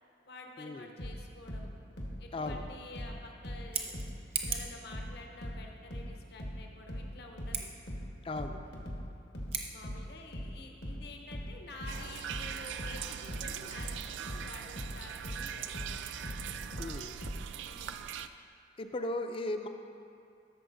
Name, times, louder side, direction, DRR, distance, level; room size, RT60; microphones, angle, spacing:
voice 1, 0.3-1.7 2.2-4.1 4.5-7.7 9.7-16.2 17.6-17.9, left 2 dB, 60° left, 2 dB, 0.8 m, -50 dB
sound 1, 1.0-4.2 4.4-17.5, equal, 80° left, 1.3 m, -40 dB
Scissors, 3.5-4.8 7.4-7.7 9.4-9.7, right 6 dB, 35° right, 0.6 m, -37 dB
voice 2, 8.2-8.6 16.8-17.1 18.8-19.7, left 2 dB, 30° left, 7 dB, 0.4 m, -36 dB
sound 2, 11.9-18.3, right 9 dB, 85° right, 0.3 m, -41 dB
13.5 x 6.4 x 2.6 m, 2.5 s
head